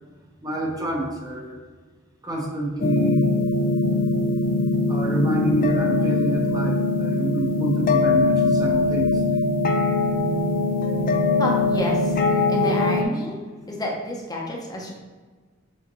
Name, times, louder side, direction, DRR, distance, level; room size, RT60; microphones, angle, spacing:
voice 1, 0.4-1.6 2.2-3.2 4.9-9.4, right 1 dB, 20° right, -1 dB, 0.9 m, -27 dB
sound 1, 2.8-13.0, left 3 dB, 45° left, 0.5 m, -21 dB
voice 2, 11.4-12.2 12.5-13.4 13.7-15.0, left 1 dB, 20° left, -1 dB, 0.9 m, -29 dB
7.3 x 4.3 x 3.1 m, 1.4 s
head